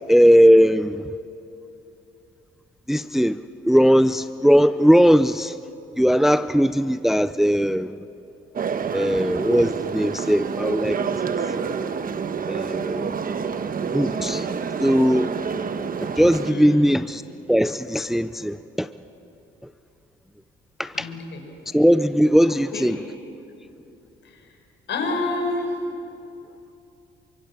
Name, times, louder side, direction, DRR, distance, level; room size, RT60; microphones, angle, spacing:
voice 1, 0.1-1.1 2.9-5.6 6.0-8.0 8.9-11.0 12.5-13.1 13.9-14.5 14.8-15.3 16.0-17.2 17.5-18.9 20.8-21.1 21.7-23.0, equal, ahead, 0.6 m, -19 dB
sound 1, 8.6-16.5, right 6 dB, 45° right, 1.2 m, -28 dB
voice 2, 16.5-16.9 20.9-21.4 22.5-22.9 24.2-24.6 24.9-25.8, left 3 dB, 65° left, 6.6 m, -29 dB
27.5 x 24.0 x 7.5 m
cardioid pair, 90°, 20 cm